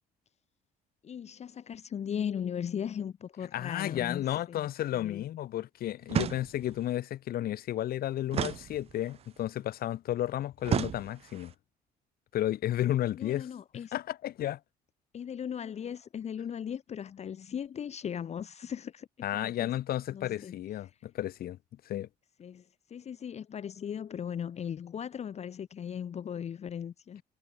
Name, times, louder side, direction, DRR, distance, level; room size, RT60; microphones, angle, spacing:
voice 1, 1.0-5.2 13.2-13.9 15.1-19.1 19.3-19.7 20.1-20.5 22.4-22.6 22.9-27.2, left 8 dB, 40° left, 1.0 m, -38 dB
voice 2, 3.5-11.5 12.3-13.5 13.9-14.6 19.2-21.6 21.8-22.1, left 13 dB, 65° left, 1.7 m, -32 dB
sound 1, 6.1-6.8 8.3-9.3 10.6-11.5, right 10 dB, 35° right, 0.4 m, -33 dB
cardioid pair, 110°, 17 cm